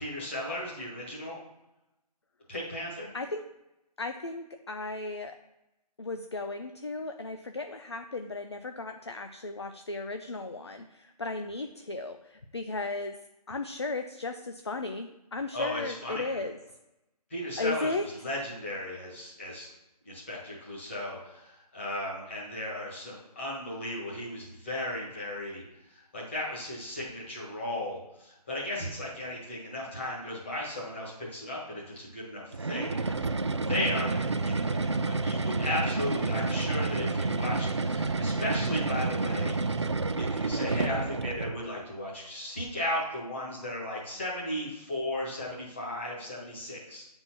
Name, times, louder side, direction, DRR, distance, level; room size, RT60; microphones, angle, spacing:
voice 1, 0.0-1.4 2.5-3.1 15.5-16.4 17.3-19.7 20.0-25.6 25.9-33.3 33.7-39.9 40.2-47.1, left 1 dB, 20° left, -4 dB, 1.6 m, -36 dB
voice 2, 4.0-5.4 6.0-13.1 13.5-16.6 17.6-18.0, left 3 dB, 40° left, 6 dB, 0.5 m, -35 dB
sound 1, 32.5-41.6, right 3 dB, 45° right, 0.4 m, -29 dB
9.0 x 4.4 x 5.9 m, 0.94 s
hypercardioid pair, 180°, 21 cm